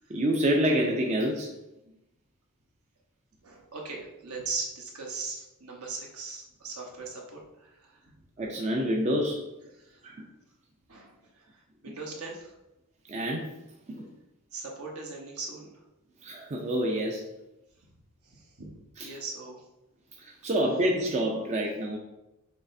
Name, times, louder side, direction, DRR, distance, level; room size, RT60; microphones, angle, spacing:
voice 1, 0.1-1.5 8.4-9.4 10.0-10.2 13.1-13.6 13.9-14.1 16.2-17.2 19.0-19.1 20.2-22.0, equal, 30° right, 0 dB, 0.5 m, -27 dB
voice 2, 3.4-8.1 9.7-10.0 10.9-12.5 14.5-15.8 18.2-18.7 19.0-19.7, right 4 dB, 70° right, -1 dB, 1.0 m, -39 dB
6.3 x 3.2 x 2.6 m, 0.94 s
head